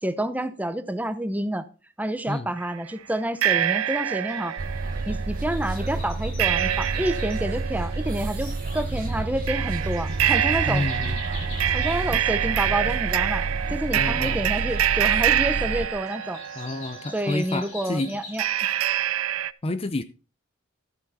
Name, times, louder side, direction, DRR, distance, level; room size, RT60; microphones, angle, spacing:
voice 1, 0.0-1.6 2.0-4.5 5.1-10.9 11.7-16.4 17.1-18.4, right 1 dB, 10° right, 0.7 m, -29 dB
sound 1, 2.6-2.7 3.4-17.4 18.4-19.5, right 11 dB, 90° right, 0.5 m, -26 dB
sound 2, 4.3-18.4, left 3 dB, 65° left, 6.0 m, -45 dB
sound 3, 4.6-15.9, right 2 dB, 45° right, 0.7 m, -30 dB
voice 2, 10.7-11.2 13.9-14.4 16.6-18.2 19.6-20.0, left 2 dB, 30° left, 0.5 m, -29 dB
13.5 x 6.4 x 4.1 m
head